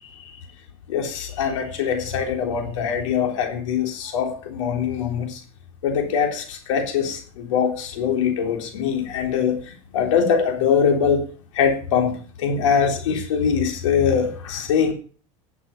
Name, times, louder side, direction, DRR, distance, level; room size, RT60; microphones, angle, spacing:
voice 1, 0.9-5.4 5.8-9.6 9.9-11.2 11.6-12.1 12.4-14.9, left 7 dB, 85° left, 3 dB, 3.7 m, -22 dB
12.5 x 7.5 x 5.8 m, 0.40 s
supercardioid pair, 110°, 16 cm